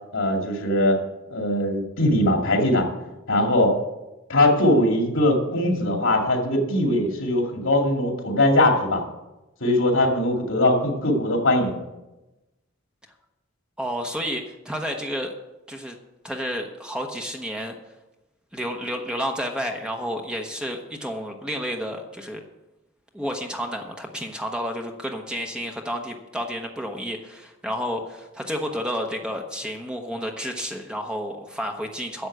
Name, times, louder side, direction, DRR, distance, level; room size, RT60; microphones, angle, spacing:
voice 1, 0.1-1.0 1.3-2.9 3.3-3.7 4.3-9.0 9.6-11.8, left 1 dB, 80° left, 2 dB, 2.4 m, -21 dB
voice 2, 13.8-15.3 15.7-16.0 16.2-17.7 18.5-22.4 23.1-32.3, equal, 5° right, 3 dB, 1.0 m, -31 dB
11.0 x 7.2 x 8.0 m, 1.0 s
head